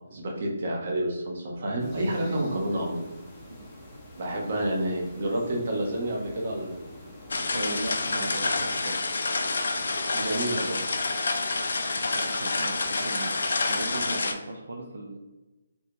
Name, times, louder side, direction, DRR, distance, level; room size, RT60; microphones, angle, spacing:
voice 1, 0.1-3.0 4.2-6.7 10.1-10.8, right 1 dB, 40° right, -1 dB, 0.8 m, -29 dB
sound 1, 1.8-8.7, left 1 dB, 10° left, 0.5 m, -47 dB
voice 2, 2.2-2.6 3.5-3.7 7.5-9.0 12.0-15.2, right 2 dB, 70° right, 0 dB, 0.5 m, -37 dB
sound 2, 7.3-14.3, left 3 dB, 65° left, 0.4 m, -28 dB
2.9 x 2.7 x 3.4 m, 1.1 s
hypercardioid pair, 175°, 0 cm